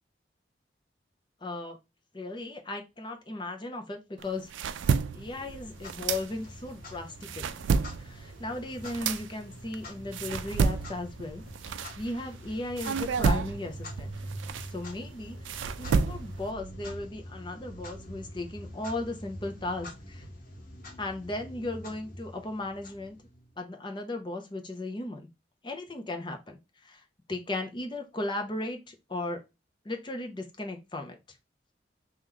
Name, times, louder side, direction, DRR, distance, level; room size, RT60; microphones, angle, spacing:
voice 1, 1.4-1.8 2.1-4.5 5.1-7.6 8.0-14.1 14.7-20.2 21.0-23.2 23.6-25.2 25.6-27.0 27.3-29.4 29.8-31.2, left 2 dB, 25° left, 0.7 m, -36 dB
sound 1, 4.2-6.7 7.1-12.4 12.8-16.5, right 5 dB, 85° right, 0.4 m, -30 dB
Clock, 4.8-23.5, equal, 50° left, 1.2 m, -45 dB
3.1 x 3.1 x 3.8 m
head